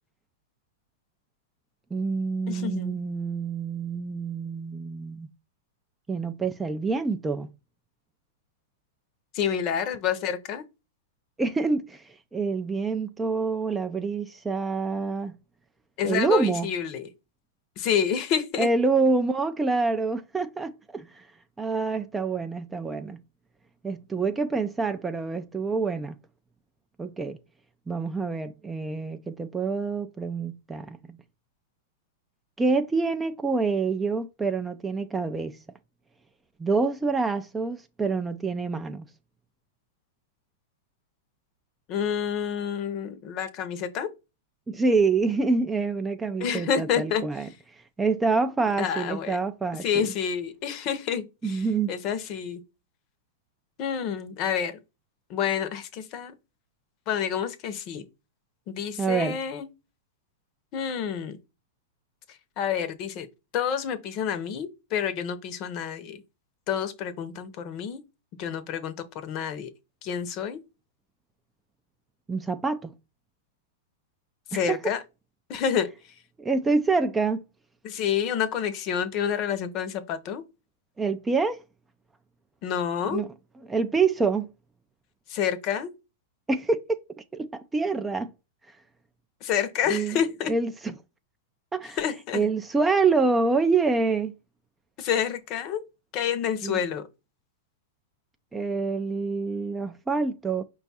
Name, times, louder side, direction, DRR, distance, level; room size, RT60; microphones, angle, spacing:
voice 1, 1.9-5.3 6.1-7.5 11.4-15.3 16.0-16.7 18.6-21.3 21.6-23.2 23.8-26.2 27.0-27.4 27.9-31.2 32.6-35.6 36.6-39.1 44.7-50.1 51.4-51.9 59.0-59.4 72.3-72.9 74.5-74.9 76.4-77.4 81.0-81.6 83.1-83.3 83.6-84.5 86.5-87.0 87.3-88.3 89.9-90.2 90.5-90.9 91.7-92.0 92.3-94.3 96.6-96.8 98.5-100.6, right 4 dB, 10° right, 0.3 m, -26 dB
voice 2, 2.5-3.0 9.3-10.6 16.0-17.1 17.8-18.7 41.9-44.1 46.4-47.2 48.8-49.4 49.8-52.6 53.8-54.8 55.3-56.3 57.1-58.0 58.7-59.7 60.7-61.4 62.6-63.3 63.5-66.2 66.7-68.0 68.4-68.9 69.2-69.7 70.0-70.6 74.5-75.0 75.5-75.9 77.8-80.4 82.6-83.2 85.3-85.9 89.4-90.5 92.0-92.4 95.0-95.8 96.1-97.0, left 8 dB, 40° left, 0.7 m, -28 dB
5.1 x 2.3 x 4.0 m
hypercardioid pair, 135°, 0 cm